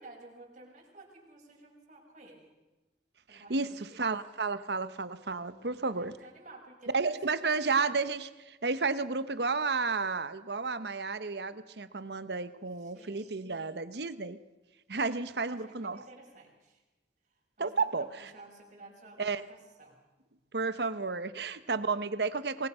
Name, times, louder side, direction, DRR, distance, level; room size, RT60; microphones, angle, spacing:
voice 1, 0.0-2.5 3.3-4.1 5.5-8.0 12.8-13.4 15.5-16.8 17.3-20.0, right 2 dB, 45° right, -1 dB, 5.9 m, -53 dB
voice 2, 3.3-3.7 4.0-6.1 6.9-14.4 14.9-16.0 17.6-18.1 19.2-19.4 20.5-22.7, right 4 dB, 65° right, 13 dB, 1.0 m, -32 dB
27.0 x 20.5 x 5.7 m, 1.1 s
head